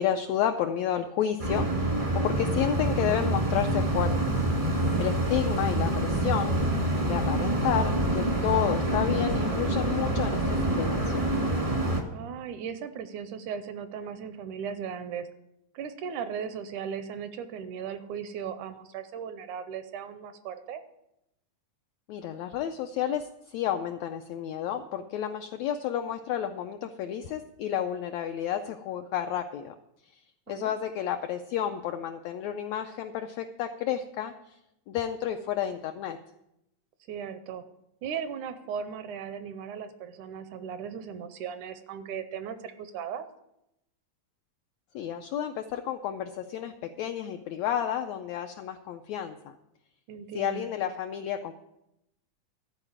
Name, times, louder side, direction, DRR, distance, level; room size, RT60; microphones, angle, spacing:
voice 1, 0.0-4.2 5.0-6.6 7.1-11.3 22.1-29.7 30.1-30.2 30.5-34.6 34.9-36.2 44.9-49.6 50.3-51.5, left 10 dB, 85° left, 7 dB, 1.5 m, -31 dB
sound 1, 1.4-12.0, right 1 dB, 35° right, 0.5 m, -26 dB
voice 2, 12.1-15.3 15.7-20.8 30.5-30.7 37.1-37.6 38.0-43.3 50.1-50.7, right 7 dB, 80° right, 11 dB, 2.0 m, -37 dB
13.0 x 4.9 x 8.7 m, 0.85 s
omnidirectional pair, 3.7 m